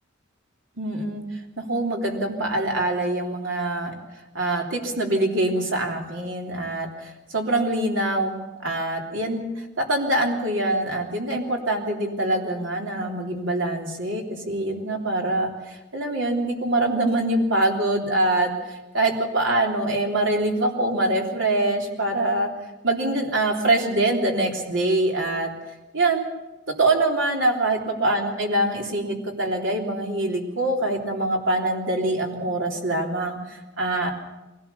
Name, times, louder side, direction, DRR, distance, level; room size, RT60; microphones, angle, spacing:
voice 1, 0.8-1.2 1.6-3.9 4.3-6.9 7.3-8.4 8.6-9.4 9.8-15.5 15.9-18.5 18.9-22.5 22.8-25.5 25.9-26.3 26.8-33.4 33.8-34.1, right 2 dB, 75° right, 1 dB, 3.3 m, -24 dB
23.0 x 17.0 x 6.9 m, 1.1 s
head